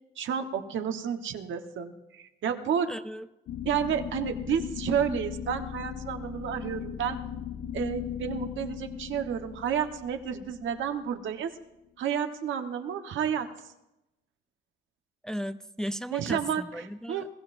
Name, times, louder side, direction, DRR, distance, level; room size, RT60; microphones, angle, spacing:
voice 1, 0.2-2.9 3.6-7.2 7.7-11.6 12.0-13.5 16.1-17.3, right 8 dB, 75° right, 6 dB, 1.2 m, -31 dB
voice 2, 2.9-3.3 15.2-17.3, equal, 5° left, 11 dB, 0.5 m, -36 dB
sound 1, 3.5-11.4, left 9 dB, 80° left, 0.7 m, -38 dB
21.0 x 15.0 x 2.6 m, 0.93 s
cardioid pair, 90°, 20 cm